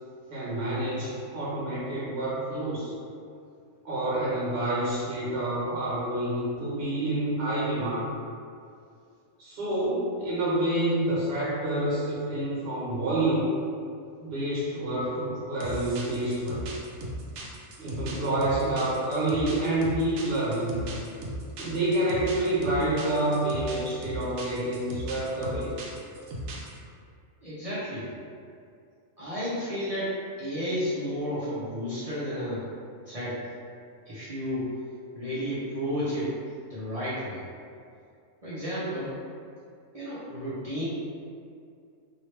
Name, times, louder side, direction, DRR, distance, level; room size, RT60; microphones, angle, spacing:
voice 1, 0.3-2.9 3.8-8.1 9.4-13.6 14.2-16.6 17.8-20.9 21.6-25.8, right 1 dB, 50° right, -8 dB, 1.0 m, -28 dB
sound 1, 15.6-26.8, right 1 dB, 75° right, 0.9 m, -37 dB
voice 2, 27.4-28.1 29.2-32.7 33.1-33.4 34.1-34.7 35.1-36.3 36.7-37.4 38.4-39.2 39.9-40.8, equal, 35° right, -11 dB, 0.6 m, -32 dB
3.0 x 2.8 x 3.2 m, 2.4 s
omnidirectional pair, 1.4 m